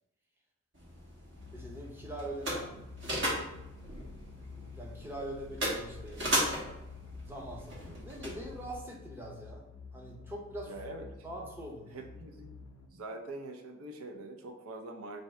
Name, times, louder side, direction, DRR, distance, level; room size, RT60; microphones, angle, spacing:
sound 1, 0.7-8.8, equal, 60° right, 1.2 m, -37 dB
sound 2, 1.4-12.9, left 4 dB, 85° left, 0.5 m, -49 dB
voice 1, 1.5-2.6 4.8-6.2 7.2-9.6 9.9-10.7 11.2-12.0, right 1 dB, 10° right, -2 dB, 0.6 m, -43 dB
voice 2, 2.5-2.8 10.7-11.4 11.9-12.5 12.9-15.2, right 2 dB, 85° right, 4 dB, 0.5 m, -44 dB
4.6 x 2.7 x 3.1 m, 0.89 s
head